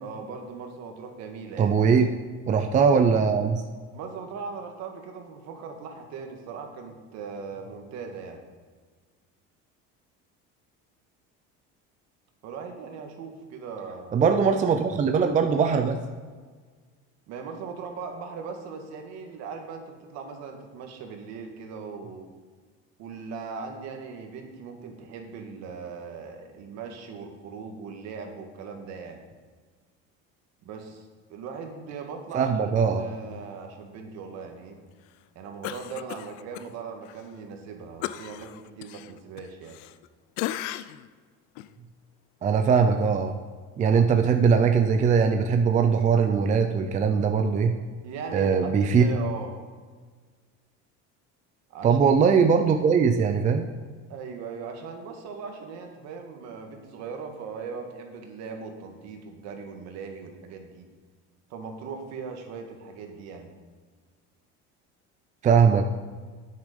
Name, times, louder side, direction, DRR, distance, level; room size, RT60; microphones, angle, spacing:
voice 1, 0.0-1.7 3.9-8.4 12.4-14.3 17.3-22.3 23.0-29.2 30.6-31.0 31.3-34.8 35.3-39.7 48.0-49.6 51.7-52.0 54.1-60.8 61.5-63.5, right 5 dB, 60° right, 4 dB, 1.7 m, -39 dB
voice 2, 1.6-2.1 2.5-3.6 14.1-16.0 32.3-33.1 42.4-43.4 43.8-47.7 48.3-49.0 51.8-53.7 65.4-65.8, right 6 dB, 25° right, 6 dB, 0.5 m, -21 dB
Cough, 35.6-36.7 37.1-37.2 38.0-40.1 40.4-41.1 41.6-41.7, left 14 dB, 85° left, 0.5 m, -35 dB
9.5 x 8.4 x 5.2 m, 1.5 s
cardioid pair, 150°, 30 cm